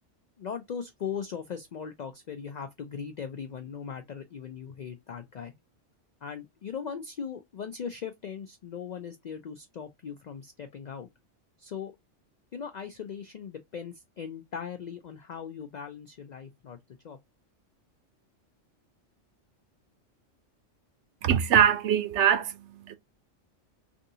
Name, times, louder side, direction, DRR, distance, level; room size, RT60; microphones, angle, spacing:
voice 1, 0.4-5.5 6.2-11.1 11.6-11.9 12.5-16.8 17.0-17.2, left 7 dB, 70° left, 0.4 m, -39 dB
voice 2, 21.2-23.0, right 9 dB, 70° right, 0.9 m, -23 dB
3.4 x 2.7 x 2.7 m
omnidirectional pair, 1.3 m